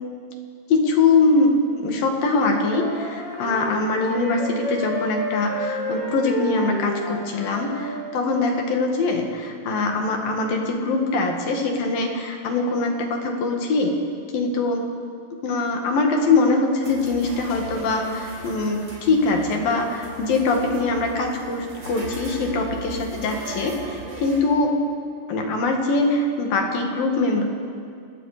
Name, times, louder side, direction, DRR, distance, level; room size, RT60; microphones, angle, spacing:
voice 1, 0.7-13.9 14.3-14.8 15.4-24.8 25.3-27.4, left 3 dB, 65° left, 2 dB, 3.4 m, -22 dB
Wind instrument woodwind instrument, 2.4-8.1, left 1 dB, 85° left, 7.1 m, -30 dB
sound 1, 16.8-24.4, equal, 35° right, 6.1 m, -38 dB
29.5 x 19.5 x 5.0 m, 2.3 s
omnidirectional pair, 4.7 m